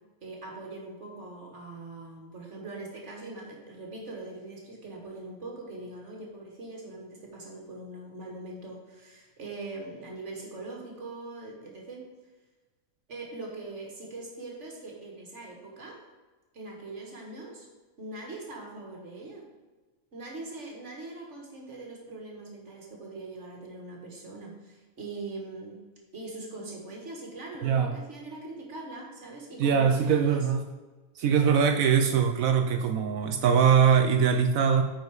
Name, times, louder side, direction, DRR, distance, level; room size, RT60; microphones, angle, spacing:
voice 1, 0.2-12.0 13.1-16.0 16.5-17.7 18.0-19.5 20.1-25.8 26.1-30.5 31.4-31.8, right 2 dB, 55° right, -1 dB, 1.7 m, -42 dB
voice 2, 29.6-30.6 31.2-34.8, right 7 dB, 70° right, 6 dB, 1.0 m, -22 dB
9.3 x 4.7 x 4.8 m, 1.2 s
omnidirectional pair, 1.5 m